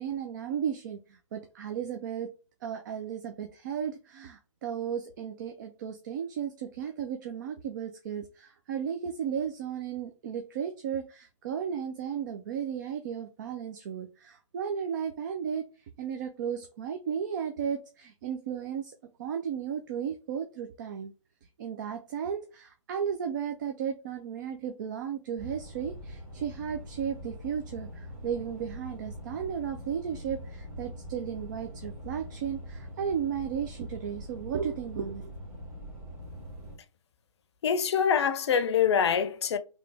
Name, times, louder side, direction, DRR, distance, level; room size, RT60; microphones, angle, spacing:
voice 1, 0.0-2.3 2.6-15.7 16.0-21.1 21.6-35.3, right 8 dB, 35° right, 0.5 m, -34 dB
sound 1, 25.4-36.8, equal, 15° right, 1.6 m, -43 dB
voice 2, 37.6-39.6, left 7 dB, 55° left, 0.6 m, -25 dB
3.3 x 3.0 x 3.3 m
hypercardioid pair, 145°, 17 cm